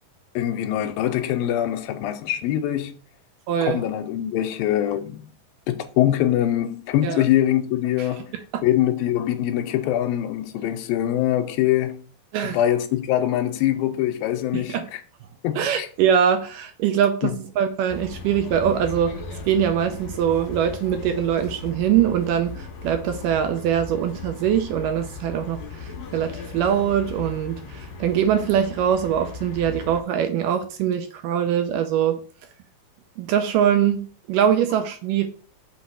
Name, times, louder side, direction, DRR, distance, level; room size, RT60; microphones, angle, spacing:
voice 1, 0.4-3.0 3.6-5.2 5.7-8.3 8.6-12.0 12.4-15.0 15.4-15.9 17.2-17.4, left 12 dB, 85° left, 2.4 m, -23 dB
voice 2, 3.5-3.8 7.0-7.2 8.5-8.6 12.3-12.6 14.5-14.9 15.6-19.2 19.5-32.2 33.2-35.3, right 9 dB, 75° right, 2.1 m, -23 dB
sound 1, 17.9-30.0, left 3 dB, 55° left, 2.6 m, -37 dB
5.8 x 4.1 x 6.2 m
omnidirectional pair, 4.2 m